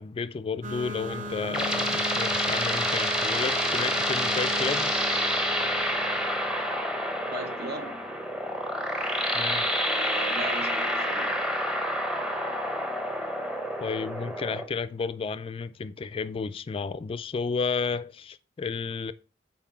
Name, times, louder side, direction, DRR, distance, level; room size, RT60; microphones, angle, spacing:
voice 1, 0.0-4.9 9.3-9.7 13.8-19.1, left 5 dB, 30° left, 0.3 m, -32 dB
sound 1, 0.6-8.0, equal, 45° right, 0.7 m, -37 dB
sound 2, 1.0-14.7, equal, 5° right, 0.8 m, -28 dB
voice 2, 7.3-8.1 9.8-11.4, right 2 dB, 65° right, 1.0 m, -38 dB
5.7 x 4.3 x 4.6 m
head